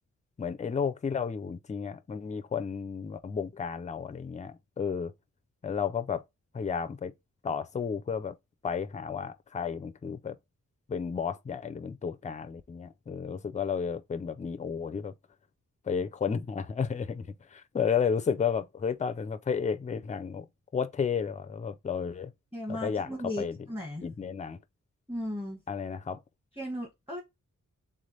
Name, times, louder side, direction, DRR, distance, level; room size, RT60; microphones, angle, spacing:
voice 1, 0.4-5.1 5.6-6.2 6.5-7.1 7.4-8.3 8.6-10.4 10.9-15.1 15.9-20.5 20.7-22.3 22.7-23.1 23.4-23.6 24.0-24.6 25.7-26.2, left 6 dB, 25° left, 0.4 m, -32 dB
voice 2, 22.5-24.1 25.1-25.6 26.5-27.2, left 1 dB, 10° right, 1.2 m, -36 dB
3.6 x 3.2 x 3.9 m
wide cardioid pair, 165°, 31 cm